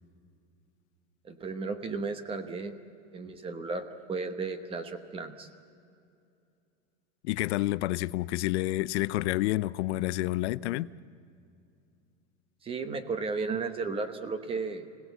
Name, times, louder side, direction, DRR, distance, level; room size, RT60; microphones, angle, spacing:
voice 1, 1.2-2.7 3.1-5.5 12.6-14.9, right 4 dB, 15° right, 0.9 m, -34 dB
voice 2, 7.2-10.9, left 17 dB, 75° left, 0.6 m, -29 dB
26.0 x 17.5 x 8.1 m
supercardioid pair, 160°, 35 cm